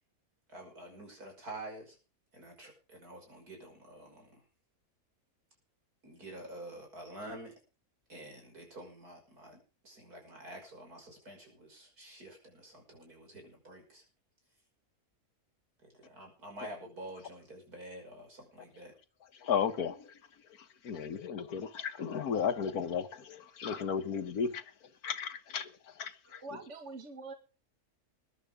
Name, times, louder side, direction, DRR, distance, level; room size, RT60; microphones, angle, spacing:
voice 1, 0.5-2.0 2.3-4.4 6.0-7.5 8.1-14.0 15.8-18.9, right 1 dB, 85° right, 6.4 m, -48 dB
voice 2, 19.4-20.1 20.8-24.6 25.0-25.7 26.0-26.4, left 7 dB, 80° left, 1.7 m, -34 dB
voice 3, 26.3-27.3, right 3 dB, 50° right, 2.2 m, -45 dB
21.5 x 11.0 x 3.6 m
omnidirectional pair, 1.6 m